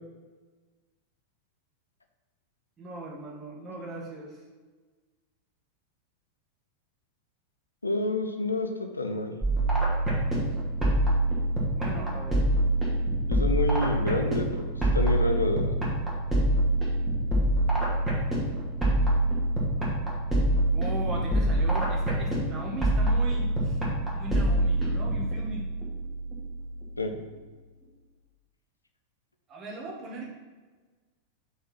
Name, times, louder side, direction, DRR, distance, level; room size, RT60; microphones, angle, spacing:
voice 1, 2.8-4.4 11.8-12.4 19.8-20.0 20.7-23.8 24.1-25.7 29.5-30.3, right 1 dB, 25° right, -1 dB, 1.8 m, -38 dB
voice 2, 7.8-9.4 13.3-15.7 27.0-27.1, left 2 dB, 80° left, 5 dB, 0.7 m, -29 dB
sound 1, 9.4-27.0, right 1 dB, 5° right, 2.1 m, -26 dB
5.5 x 4.9 x 5.6 m, 1.3 s
figure-of-eight pair, 90°, 0 cm